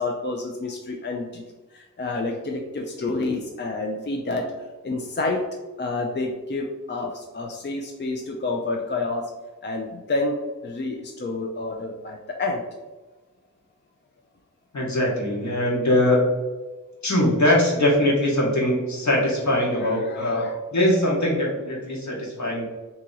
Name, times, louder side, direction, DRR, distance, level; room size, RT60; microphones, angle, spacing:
voice 1, 0.0-1.4 1.7-4.5 4.8-5.5 5.8-9.3 9.6-10.4 10.6-12.6 19.6-20.6, left 2 dB, 35° left, 2 dB, 0.4 m, -29 dB
voice 2, 14.7-16.2 17.0-20.4 20.7-22.6, left 1 dB, 60° left, -4 dB, 1.2 m, -22 dB
2.8 x 2.8 x 3.7 m, 1.2 s
wide cardioid pair, 55°, 32 cm